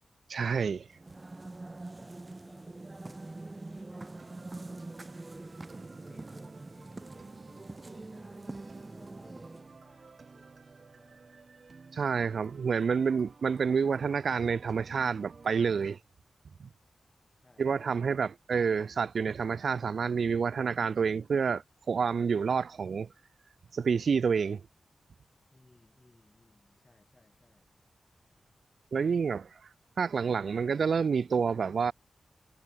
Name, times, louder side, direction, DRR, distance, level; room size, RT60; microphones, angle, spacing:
voice 1, 0.3-0.9 11.9-16.0 17.6-23.1 23.7-24.6 28.9-29.5 30.0-31.9, right 6 dB, 70° right, 0.3 m, -28 dB
sound 1, 0.9-9.8, right 2 dB, 25° right, 2.5 m, -44 dB
voice 2, 1.6-5.6 6.1-11.5 17.4-18.0 25.5-27.7, left 2 dB, 25° left, 7.1 m, -63 dB
sound 2, 4.1-16.0, right 4 dB, 50° right, 2.1 m, -54 dB
wide cardioid pair, 100°, 0 cm